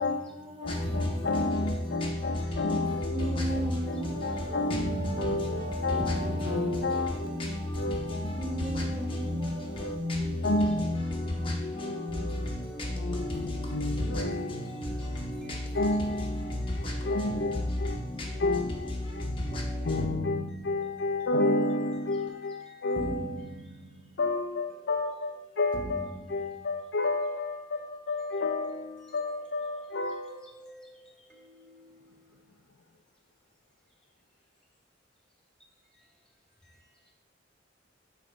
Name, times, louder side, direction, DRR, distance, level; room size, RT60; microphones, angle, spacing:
voice 1, 0.0-1.5 3.1-7.2 8.3-10.3 12.1-12.6 14.0-14.6 17.3-17.7 20.0-20.7 23.0-24.1 25.7-26.0, right 1 dB, 30° right, 0.9 m, -37 dB
voice 2, 0.6-8.8 9.1-11.0 11.4-14.8 15.7-18.0 18.4-23.5 24.2-30.5, left 2 dB, 65° left, 0.5 m, -32 dB
sound 1, 0.7-20.1, left 1 dB, 30° left, 1.0 m, -33 dB
voice 3, 5.6-5.9 9.3-9.8 11.6-11.7 15.0-15.1 17.0-17.6 18.2-18.4 19.5-19.8 28.3-28.8 30.2-30.9 31.3-31.8, right 2 dB, 5° left, 1.6 m, -52 dB
7.7 x 3.2 x 5.0 m
head